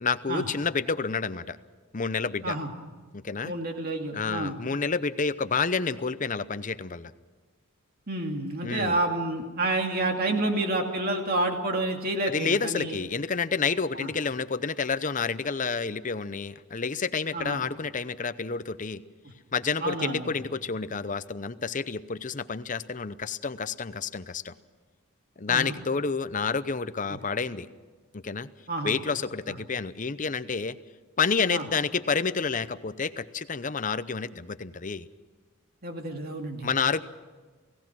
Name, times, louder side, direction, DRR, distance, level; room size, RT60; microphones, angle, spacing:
voice 1, 0.0-1.6 1.9-2.6 3.1-3.5 4.1-7.1 8.6-9.0 12.3-19.0 19.5-24.5 25.4-27.7 28.1-28.5 28.8-30.8 31.2-35.1 36.6-37.0, left 5 dB, 35° left, 14 dB, 0.7 m, -29 dB
voice 2, 3.4-4.6 8.1-13.0 13.9-14.1 17.3-17.6 19.8-20.3 25.5-25.7 27.1-27.2 28.7-28.9 31.5-31.6 35.8-36.7, right 2 dB, 40° right, 3 dB, 2.5 m, -29 dB
29.0 x 17.5 x 6.2 m, 1.4 s
head